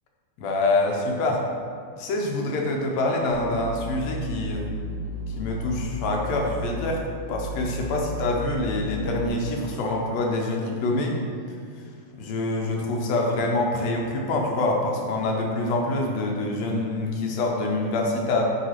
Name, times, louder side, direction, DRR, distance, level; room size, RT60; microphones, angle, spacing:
voice 1, 0.4-1.4 2.0-4.7 5.3-7.0 7.3-11.2 12.2-18.4, left 2 dB, 70° left, 0 dB, 2.0 m, -26 dB
sound 1, 3.3-9.3, equal, 55° left, 0.8 m, -33 dB
7.9 x 3.5 x 5.8 m, 2.1 s
omnidirectional pair, 3.3 m